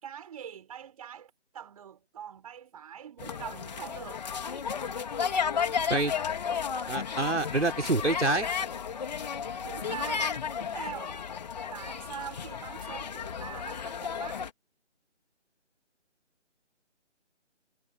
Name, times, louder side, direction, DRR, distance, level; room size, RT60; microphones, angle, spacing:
voice 1, 0.0-4.2 9.6-10.3 10.6-11.2 11.7-14.4, right 8 dB, 30° right, 6.3 m, -43 dB
sound 1, 3.2-14.5, left 7 dB, 35° left, 3.9 m, -33 dB
voice 2, 6.9-8.5, right 2 dB, 75° right, 5.7 m, -27 dB
figure-of-eight pair, 155°, 35 cm